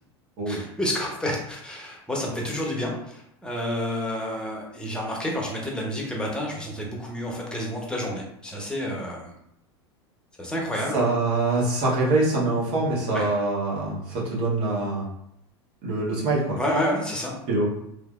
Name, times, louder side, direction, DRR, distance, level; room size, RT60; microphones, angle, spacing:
voice 1, 0.5-9.3 10.4-11.0 13.1-13.3 16.6-17.3, equal, 5° left, -2 dB, 1.0 m, -29 dB
voice 2, 10.9-15.1 15.8-16.6 17.5-17.6, right 2 dB, 50° right, -5 dB, 1.4 m, -24 dB
3.1 x 2.7 x 2.4 m, 0.78 s
hypercardioid pair, 85°, 14 cm